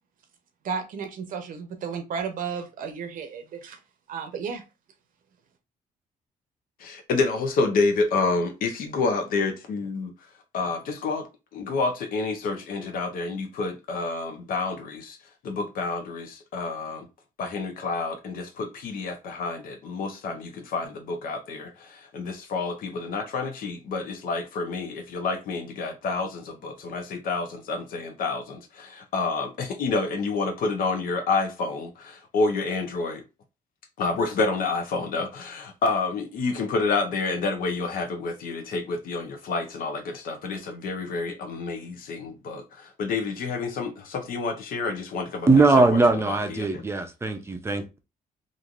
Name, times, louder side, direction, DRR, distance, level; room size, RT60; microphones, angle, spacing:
voice 1, 0.6-3.8 4.1-4.6, right 6 dB, 70° right, 0.7 m, -33 dB
voice 2, 6.8-10.1 10.5-11.3 11.5-15.2 15.4-17.1 17.4-33.2 34.0-46.0 46.3-46.8, left 3 dB, 70° left, 0.8 m, -29 dB
voice 3, 45.5-48.0, right 3 dB, 15° right, 0.5 m, -20 dB
3.1 x 2.5 x 2.4 m
cardioid pair, 110°, 15 cm